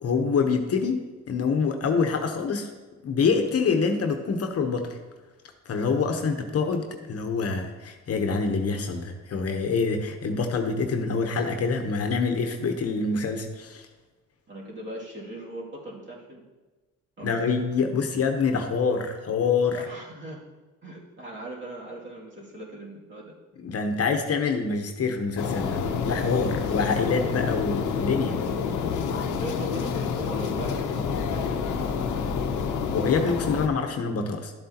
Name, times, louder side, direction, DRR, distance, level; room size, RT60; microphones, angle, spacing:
voice 1, 0.0-2.7 3.0-5.0 5.7-13.9 17.2-19.9 23.6-28.4 32.9-34.5, left 5 dB, 50° left, 5 dB, 1.0 m, -26 dB
voice 2, 14.5-16.4 17.2-17.5 19.7-20.4 20.8-23.3 29.3-31.6, right 1 dB, 40° right, -4 dB, 2.6 m, -39 dB
sound 1, 25.4-33.7, left 6 dB, 85° left, 0.9 m, -28 dB
11.5 x 7.7 x 2.9 m, 1.2 s
cardioid pair, 90°, 30 cm